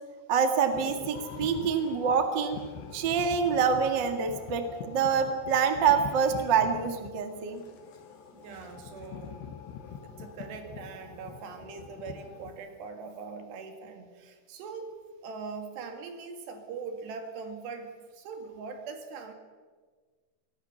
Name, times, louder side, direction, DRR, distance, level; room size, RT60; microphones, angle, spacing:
voice 1, 0.3-2.6 2.9-7.6, right 6 dB, 40° right, 6 dB, 1.7 m, -26 dB
sound 1, 0.7-12.5, left 7 dB, 90° left, 3.7 m, -44 dB
voice 2, 8.3-9.4 10.0-14.9 15.2-19.3, right 5 dB, 75° right, 6 dB, 4.2 m, -41 dB
24.5 x 19.0 x 7.1 m, 1.5 s
omnidirectional pair, 4.9 m